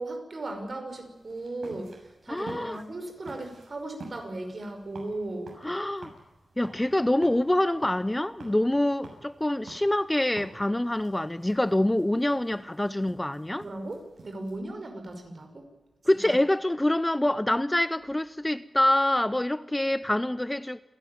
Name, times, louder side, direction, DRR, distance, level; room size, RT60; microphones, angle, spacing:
voice 1, 0.0-5.6 13.6-15.7 16.2-16.4, right 2 dB, 50° right, 5 dB, 5.5 m, -37 dB
sound 1, 0.9-14.5, right 3 dB, 70° right, 6.9 m, -50 dB
voice 2, 2.3-2.8 5.6-6.1 6.6-13.6 16.1-20.8, left 1 dB, 15° left, 15 dB, 0.6 m, -26 dB
28.5 x 11.0 x 9.3 m, 1.1 s
wide cardioid pair, 85°, 0 cm